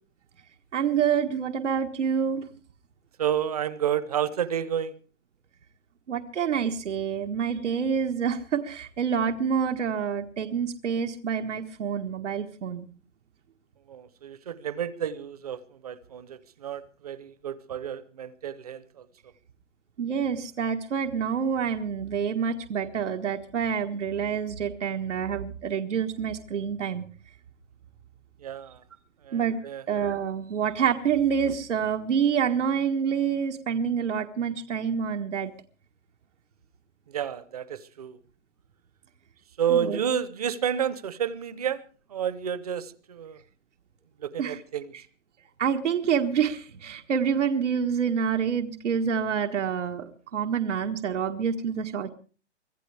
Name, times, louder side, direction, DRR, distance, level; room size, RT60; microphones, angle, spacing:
voice 1, 0.7-2.4 6.1-12.9 20.0-27.0 29.3-29.6 29.9-35.5 39.7-40.0 44.4-44.6 45.6-50.0 50.3-52.1, right 7 dB, 85° right, 3 dB, 1.6 m, -27 dB
voice 2, 3.2-4.9 13.9-19.1 28.4-28.8 29.2-29.8 37.1-38.2 39.6-41.8 42.1-43.4 44.2-45.0, right 9 dB, 35° right, 16 dB, 0.8 m, -30 dB
24.5 x 15.0 x 3.4 m, 0.40 s
hypercardioid pair, 175°, 35 cm